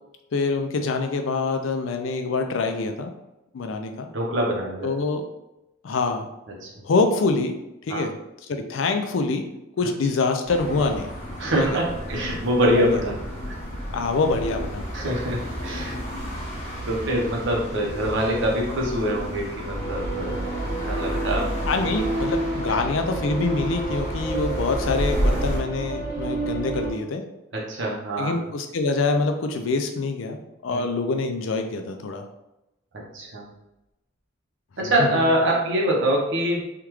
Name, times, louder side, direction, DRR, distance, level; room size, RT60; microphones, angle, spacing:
voice 1, 0.3-3.1 3.5-4.1 4.8-5.2 5.8-6.3 6.8-7.6 7.8-8.1 8.5-9.4 9.8-11.1 11.6-11.8 12.7-13.0 13.9-14.9 21.7-27.2 28.2-32.2 34.8-35.2, left 3 dB, 70° left, 6 dB, 0.4 m, -25 dB
voice 2, 4.1-4.9 6.6-6.7 7.9-8.0 11.4-13.1 13.5-13.6 14.9-16.0 16.8-20.5 20.8-21.5 27.5-28.3 30.7-30.8 33.1-33.5 34.8-36.6, equal, 65° right, -2 dB, 0.8 m, -24 dB
sound 1, 10.4-25.6, equal, 35° left, 1.0 m, -31 dB
sound 2, 19.7-26.9, right 2 dB, 5° left, 1.1 m, -30 dB
3.5 x 2.3 x 3.0 m, 0.91 s
head